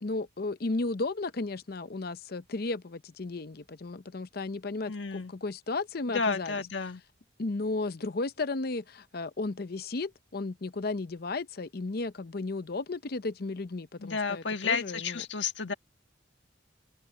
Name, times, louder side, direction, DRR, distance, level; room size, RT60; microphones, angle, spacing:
voice 1, 0.0-6.5 7.4-15.2, left 3 dB, 55° left, 0.7 m, -34 dB
voice 2, 4.9-5.3 6.1-7.0 14.0-15.7, left 5 dB, 85° left, 1.7 m, -31 dB
open air
head